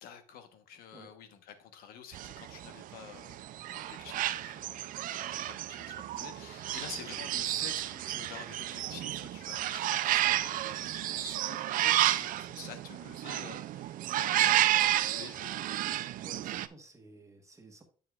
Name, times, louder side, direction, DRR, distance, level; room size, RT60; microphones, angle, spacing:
voice 1, 0.0-3.4 3.7-15.5, left 8 dB, 85° left, 1.1 m, -49 dB
sound 1, 2.1-16.7, right 13 dB, 65° right, 0.4 m, -31 dB
voice 2, 16.2-17.8, right 2 dB, 20° right, 1.3 m, -53 dB
8.5 x 6.9 x 2.4 m
cardioid pair, 120°, 15 cm